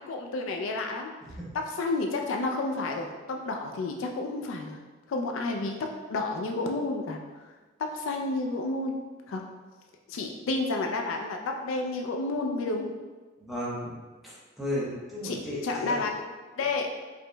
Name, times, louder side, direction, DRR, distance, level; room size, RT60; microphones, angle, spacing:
voice 1, 0.1-1.1 1.5-4.8 5.1-7.2 7.8-8.9 9.3-9.4 10.1-12.9 15.2-15.4 15.6-16.2 16.6-16.9, left 3 dB, 70° left, 2 dB, 0.4 m, -30 dB
voice 2, 13.4-13.9 14.2-16.0, left 1 dB, ahead, -8 dB, 1.0 m, -34 dB
4.9 x 2.9 x 2.2 m, 1.3 s
head